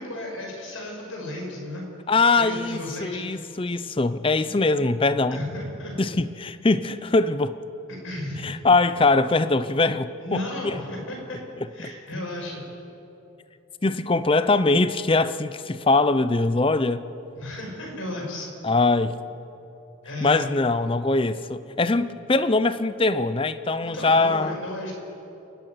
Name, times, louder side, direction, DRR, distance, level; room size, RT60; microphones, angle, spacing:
voice 1, 0.0-1.9 2.3-3.4 5.3-6.0 8.0-8.5 10.2-11.4 11.7-12.6 17.3-18.5 20.0-20.4 23.8-25.0, left 1 dB, 80° left, 0 dB, 5.9 m, -34 dB
voice 2, 2.1-5.4 6.0-7.6 8.4-10.4 13.8-17.0 18.6-19.2 20.2-24.6, left 3 dB, 25° left, 13 dB, 0.5 m, -22 dB
29.0 x 10.0 x 9.2 m, 2.9 s
head